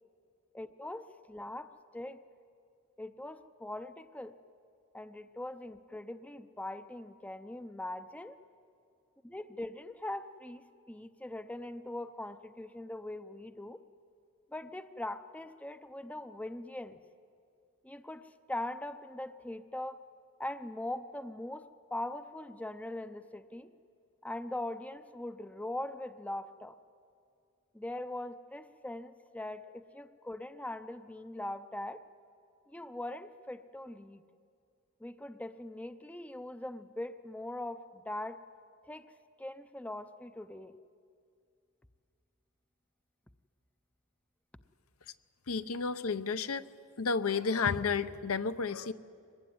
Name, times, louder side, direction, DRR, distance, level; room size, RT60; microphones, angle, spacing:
voice 1, 0.5-2.2 3.0-4.4 4.9-8.4 9.2-13.8 14.5-17.0 17.8-20.0 20.4-23.7 24.2-26.8 27.7-32.0 32.7-34.2 35.0-38.4 38.9-39.1 39.4-40.8, left 1 dB, 5° left, 11 dB, 0.5 m, -41 dB
voice 2, 45.5-46.7 47.0-48.9, left 5 dB, 65° left, 12 dB, 0.7 m, -31 dB
23.5 x 19.5 x 9.6 m, 2.4 s
head